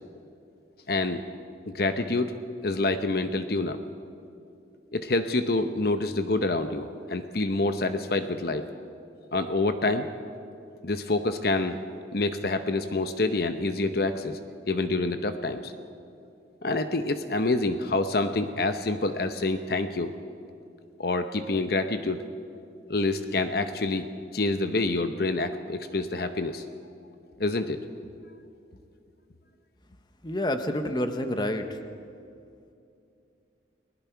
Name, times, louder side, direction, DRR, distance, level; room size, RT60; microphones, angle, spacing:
voice 1, 0.9-1.2 1.7-2.3 2.6-3.8 4.9-8.7 9.3-10.1 10.8-11.8 12.1-14.4 14.7-15.7 16.6-20.1 21.0-22.2 22.9-24.1 24.3-26.6 27.4-27.8, left 2 dB, 55° left, 8 dB, 0.9 m, -27 dB
voice 2, 30.2-31.8, left 1 dB, 25° left, 7 dB, 1.1 m, -28 dB
30.0 x 20.0 x 4.7 m, 2.6 s
head